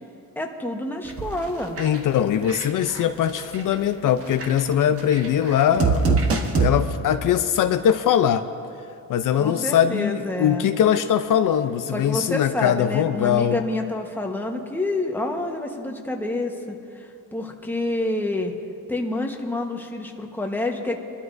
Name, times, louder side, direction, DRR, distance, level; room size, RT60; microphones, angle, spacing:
voice 1, 0.4-1.8 9.4-10.7 11.9-18.5 18.9-21.0, left 2 dB, 5° left, 1 dB, 1.2 m, -28 dB
sound 1, 1.1-1.5 1.8-2.0 2.5-3.0 3.4-3.7 4.2-6.7, right 4 dB, 40° right, 1.3 m, -23 dB
voice 2, 1.8-6.2 6.6-8.4 9.1-13.6, left 9 dB, 65° left, 9 dB, 0.6 m, -21 dB
24.5 x 12.5 x 2.6 m, 2.6 s
cardioid pair, 115°, 35 cm